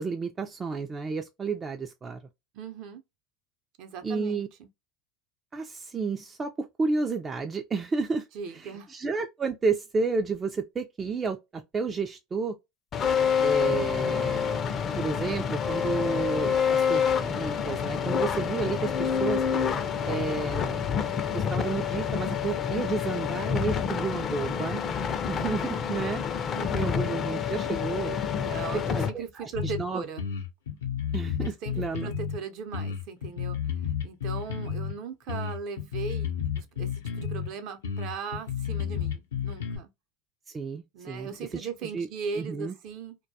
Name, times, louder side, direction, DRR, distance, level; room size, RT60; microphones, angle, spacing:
voice 1, 0.0-2.2 4.0-4.5 5.5-8.3 8.5-12.6 13.4-14.6 15.0-19.4 20.1-20.8 21.3-26.2 26.7-28.2 28.9-30.0 31.1-32.1 40.5-41.7 41.9-42.1 42.4-42.7, right 4 dB, 25° right, 0.3 m, -31 dB
voice 2, 2.5-3.0 3.8-4.7 8.3-8.9 26.5-26.9 28.3-30.2 31.4-33.6 34.0-39.9 40.9-43.2, right 5 dB, 60° right, 0.6 m, -38 dB
sound 1, 12.9-29.1, left 7 dB, 40° left, 0.4 m, -28 dB
sound 2, 29.6-29.8 30.2-32.4 32.7-34.9 35.3-37.5 37.8-39.8, left 8 dB, 85° left, 0.5 m, -31 dB
2.2 x 2.2 x 2.6 m
hypercardioid pair, 90°, 0 cm